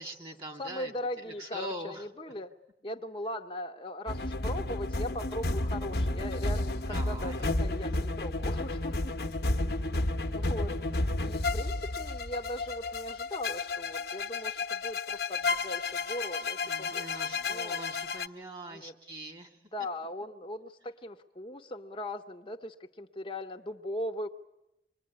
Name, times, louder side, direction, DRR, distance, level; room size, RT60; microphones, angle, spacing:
voice 1, 0.0-0.9 1.3-2.0 6.9-7.9 9.9-10.1 16.6-19.6, right 1 dB, 30° right, 4 dB, 2.5 m, -43 dB
voice 2, 0.6-2.5 2.8-9.3 9.7-17.8 18.7-18.9 19.7-24.3, left 1 dB, 30° left, 2 dB, 0.9 m, -39 dB
sound 1, 4.1-18.3, left 2 dB, 65° left, 1.0 m, -32 dB
27.5 x 22.0 x 9.6 m, 0.91 s
head